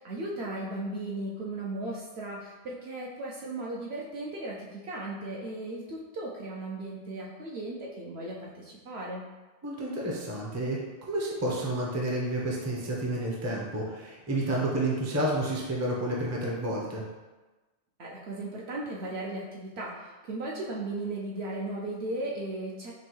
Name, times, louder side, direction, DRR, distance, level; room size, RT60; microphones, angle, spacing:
voice 1, 0.0-9.2 18.0-22.9, right 2 dB, 65° right, -4 dB, 0.7 m, -36 dB
voice 2, 9.6-17.0, right 1 dB, 20° right, -3 dB, 0.4 m, -30 dB
5.9 x 2.2 x 3.0 m, 1.2 s
omnidirectional pair, 1.4 m